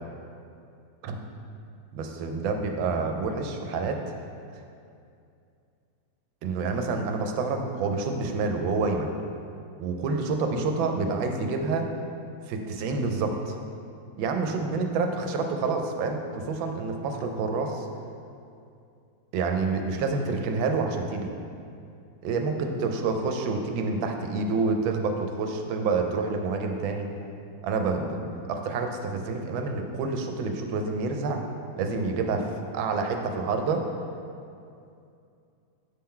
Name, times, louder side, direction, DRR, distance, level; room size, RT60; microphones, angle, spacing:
voice 1, 1.9-4.0 6.4-9.1 9.8-11.9 12.5-13.5 14.2-17.9 19.3-21.3 22.2-27.1 27.6-31.4 31.8-33.9, right 4 dB, 85° right, 4 dB, 1.4 m, -28 dB
7.4 x 3.8 x 4.3 m, 2.5 s
omnidirectional pair, 2.1 m